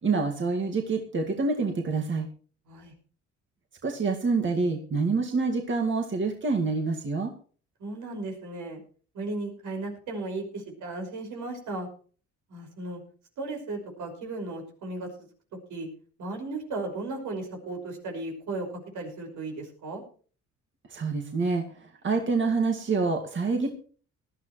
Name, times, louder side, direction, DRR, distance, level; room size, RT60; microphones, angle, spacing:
voice 1, 0.0-2.3 3.8-7.3 20.9-23.7, right 4 dB, 40° right, 2 dB, 2.2 m, -27 dB
voice 2, 7.8-8.8 9.1-11.9 12.5-13.0 13.4-15.3 15.7-15.9 16.2-20.0, right 2 dB, 80° right, 3 dB, 5.7 m, -35 dB
19.0 x 12.5 x 3.2 m, 0.41 s
cardioid pair, 90°, 30 cm